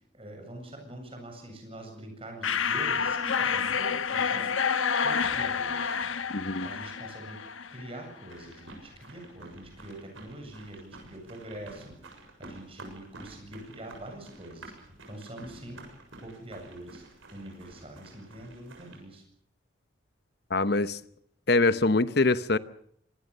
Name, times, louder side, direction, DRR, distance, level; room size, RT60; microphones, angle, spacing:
voice 1, 0.1-4.5 5.0-6.0 6.6-7.4 7.7-12.0 12.4-14.7 15.1-15.8 16.2-17.0 17.3-19.2, right 1 dB, 30° right, 7.7 m, -44 dB
sound 1, 2.4-8.0, left 6 dB, 90° left, 1.2 m, -29 dB
voice 2, 6.3-6.7 20.5-21.0 21.5-22.6, left 3 dB, 55° left, 0.9 m, -24 dB
sound 2, 8.3-19.0, right 2 dB, 90° right, 7.2 m, -50 dB
25.0 x 20.5 x 6.8 m
head